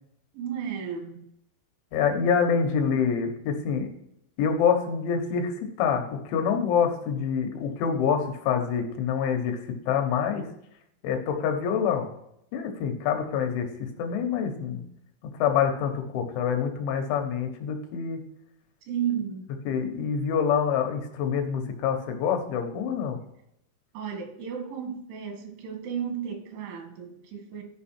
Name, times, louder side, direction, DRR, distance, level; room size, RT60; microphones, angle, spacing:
voice 1, 0.3-1.3 18.9-19.6 23.9-27.6, right 8 dB, 80° right, 4.4 m, -33 dB
voice 2, 1.9-3.9 4.4-9.6 9.9-10.5 11.0-12.1 12.5-14.8 15.4-18.2 19.7-23.2, left 7 dB, 80° left, 3.7 m, -26 dB
14.0 x 5.6 x 4.4 m
omnidirectional pair, 5.4 m